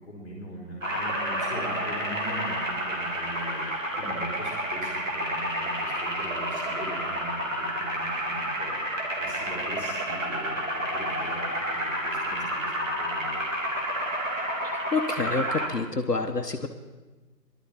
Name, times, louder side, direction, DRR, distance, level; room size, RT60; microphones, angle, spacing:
voice 1, 0.0-3.7 4.0-8.7 9.2-13.4, equal, 5° left, -13 dB, 3.5 m, -40 dB
sound 1, 0.8-15.7, right 1 dB, 50° right, 2.7 m, -30 dB
voice 2, 14.9-16.7, left 3 dB, 70° left, 5 dB, 1.3 m, -27 dB
18.5 x 12.0 x 4.7 m, 1.2 s
figure-of-eight pair, 165°, 50 cm